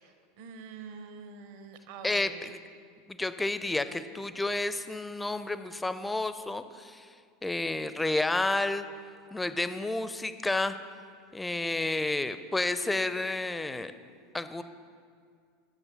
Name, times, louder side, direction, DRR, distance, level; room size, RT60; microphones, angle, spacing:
voice 1, 0.0-2.4, right 5 dB, 55° right, 8 dB, 0.8 m, -46 dB
voice 2, 2.0-2.6 3.1-7.1 7.4-8.8 9.3-10.8 11.3-13.9 14.3-14.6, left 2 dB, 10° left, 12 dB, 0.4 m, -30 dB
9.9 x 6.5 x 6.0 m, 2.1 s
figure-of-eight pair, 80°, 0 cm